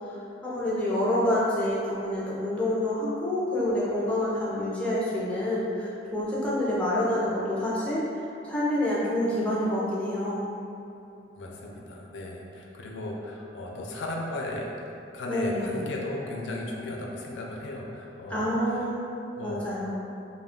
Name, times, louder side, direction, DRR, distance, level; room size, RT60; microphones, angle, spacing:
voice 1, 0.4-8.0 8.4-10.4 15.3-15.6 18.3-19.0 19.4-20.0, left 1 dB, 5° left, -8 dB, 0.5 m, -27 dB
voice 2, 11.4-14.7 15.1-18.9 19.3-19.7, left 1 dB, 85° left, -1 dB, 0.4 m, -35 dB
2.3 x 2.2 x 3.5 m, 2.7 s
head